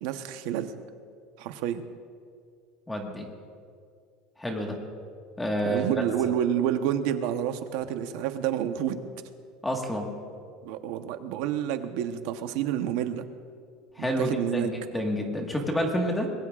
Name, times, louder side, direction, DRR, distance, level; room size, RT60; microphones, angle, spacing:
voice 1, 0.0-0.7 1.4-1.8 5.6-9.0 10.6-13.2 14.0-14.7, right 10 dB, 60° right, 8 dB, 0.9 m, -29 dB
voice 2, 2.9-3.3 4.4-4.8 5.4-5.9 9.6-10.1 13.9-16.3, equal, 5° left, 1 dB, 1.6 m, -29 dB
24.5 x 21.0 x 2.5 m, 2.2 s
cardioid pair, 175°, 0 cm